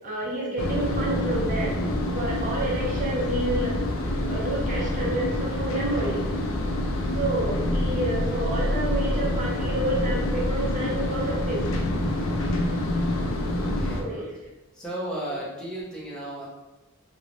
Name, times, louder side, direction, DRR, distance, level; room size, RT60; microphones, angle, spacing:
voice 1, 0.0-1.8 2.1-3.8 4.3-6.2 7.1-11.6 14.0-14.3, right 1 dB, 40° right, -4 dB, 0.6 m, -29 dB
sound 1, 0.6-14.0, left 1 dB, 85° left, 0.4 m, -27 dB
voice 2, 2.1-2.5 4.9-5.3 7.8-8.3 10.6-11.1 13.5-14.0 14.7-16.4, right 1 dB, 5° left, -7 dB, 0.6 m, -36 dB
3.0 x 2.0 x 2.6 m, 1.2 s
head